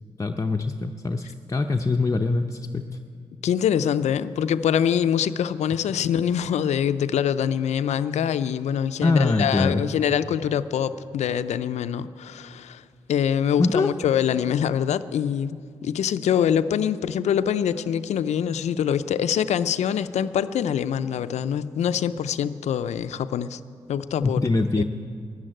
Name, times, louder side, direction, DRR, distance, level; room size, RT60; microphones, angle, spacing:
voice 1, 0.2-2.9 9.0-9.8 13.6-13.9 24.2-24.8, left 3 dB, 30° left, 4 dB, 0.6 m, -23 dB
voice 2, 3.4-12.8 13.1-15.6 15.8-23.6 23.9-24.4 24.8-24.9, left 8 dB, 85° left, 12 dB, 0.5 m, -24 dB
13.0 x 11.0 x 9.0 m, 2.3 s
cardioid pair, 60°, 11 cm